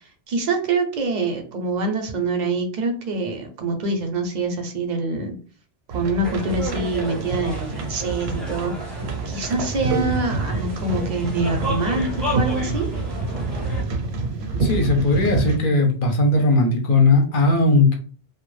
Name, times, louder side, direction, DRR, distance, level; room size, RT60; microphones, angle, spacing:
voice 1, 0.3-5.3 5.9-8.9 9.3-12.9, right 3 dB, 55° right, 4 dB, 0.5 m, -25 dB
sound 1, 5.9-15.6, right 3 dB, 80° right, 0.8 m, -27 dB
sound 2, 6.2-13.8, equal, ahead, 0.5 m, -33 dB
voice 2, 14.6-17.9, left 2 dB, 60° left, 2 dB, 0.7 m, -18 dB
2.2 x 2.0 x 3.1 m, 0.40 s
omnidirectional pair, 1.1 m